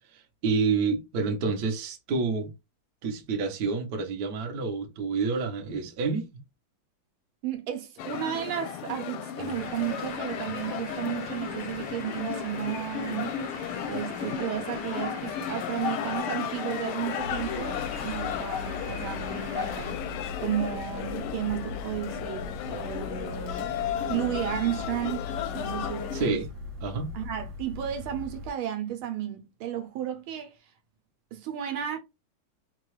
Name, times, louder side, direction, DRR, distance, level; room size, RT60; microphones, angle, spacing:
voice 1, 0.1-2.5 3.0-6.3 26.1-26.5 26.8-27.1, right 4 dB, 55° right, 1.2 m, -28 dB
voice 2, 7.4-13.4 13.8-23.7 24.1-25.3 25.5-26.4 27.1-30.7 31.3-32.0, right 11 dB, 75° right, 1.5 m, -33 dB
sound 1, 8.0-26.3, left 9 dB, 85° left, 1.5 m, -34 dB
sound 2, 9.5-19.9, left 3 dB, 60° left, 0.5 m, -43 dB
sound 3, 17.2-28.5, left 3 dB, 35° right, 1.1 m, -40 dB
4.6 x 2.3 x 3.1 m
omnidirectional pair, 2.4 m